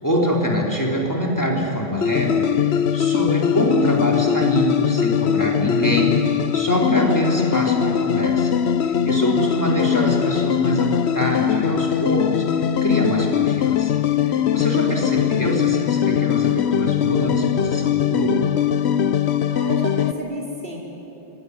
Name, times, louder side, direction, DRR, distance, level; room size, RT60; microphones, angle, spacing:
voice 1, 0.0-6.2 6.5-14.0 14.2-18.6, equal, 15° left, -1 dB, 4.0 m, -24 dB
sound 1, 2.0-20.1, left 9 dB, 85° left, 1.1 m, -21 dB
voice 2, 9.2-9.6 19.5-20.8, right 1 dB, 60° right, -2 dB, 5.0 m, -31 dB
25.5 x 21.0 x 9.9 m, 3.0 s
omnidirectional pair, 1.1 m